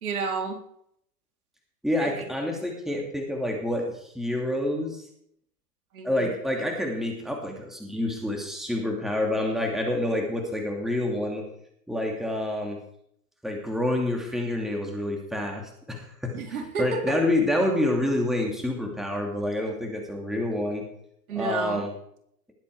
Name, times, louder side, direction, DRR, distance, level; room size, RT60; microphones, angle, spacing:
voice 1, 0.0-0.6 2.0-2.3 5.9-6.3 16.3-17.2 21.3-21.8, right 4 dB, 65° right, 2 dB, 3.8 m, -31 dB
voice 2, 1.8-3.9 4.1-5.1 6.0-11.4 11.9-12.8 13.4-16.3 16.8-20.8 21.3-21.9, left 1 dB, ahead, 1 dB, 2.6 m, -27 dB
20.0 x 8.5 x 4.8 m, 0.71 s
hypercardioid pair, 125°, 46 cm